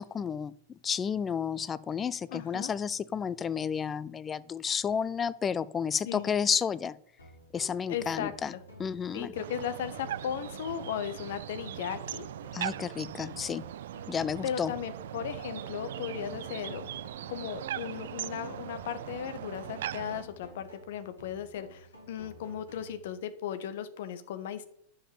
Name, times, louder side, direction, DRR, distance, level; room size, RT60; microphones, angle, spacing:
voice 1, 0.0-7.0 7.5-8.5 8.8-9.3 12.5-13.6 14.1-14.7, left 7 dB, 20° left, 18 dB, 0.5 m, -31 dB
voice 2, 2.3-2.7 6.0-6.3 7.9-8.3 9.1-12.3 14.4-16.8 17.3-24.6, left 9 dB, 55° left, 11 dB, 1.3 m, -36 dB
sound 1, 7.2-23.2, left 1 dB, 70° left, 5.2 m, -52 dB
sound 2, 9.3-20.2, right 12 dB, 60° right, 0.4 m, -40 dB
9.9 x 7.1 x 7.4 m, 0.65 s
figure-of-eight pair, 90°, 0 cm